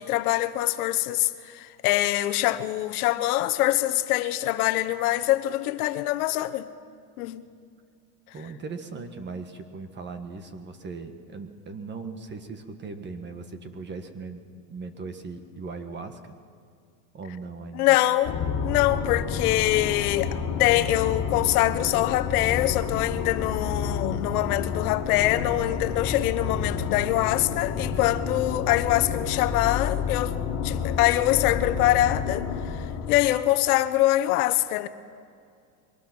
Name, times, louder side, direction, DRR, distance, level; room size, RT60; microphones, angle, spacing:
voice 1, 0.0-6.7 7.2-7.4 17.7-18.3 18.6-30.3 30.6-32.5 32.7-34.9, left 15 dB, 75° left, 1.1 m, -24 dB
voice 2, 8.3-14.4 14.7-16.3 17.1-17.9, right 4 dB, 25° right, 1.6 m, -38 dB
sound 1, 18.2-33.4, left 6 dB, 40° left, 2.5 m, -30 dB
23.0 x 18.5 x 6.1 m
supercardioid pair, 135°, 46 cm